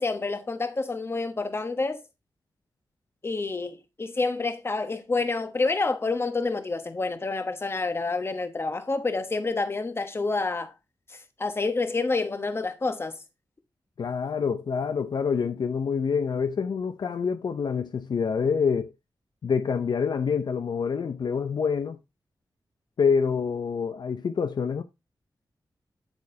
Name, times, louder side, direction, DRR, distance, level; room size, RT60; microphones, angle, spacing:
voice 1, 0.0-2.0 3.2-10.7 11.1-13.2, left 3 dB, 30° left, 1.1 m, -28 dB
voice 2, 14.0-18.9 19.4-22.0 23.0-24.8, left 6 dB, 65° left, 0.6 m, -26 dB
8.7 x 8.2 x 2.7 m
wide cardioid pair, 125°, 8 cm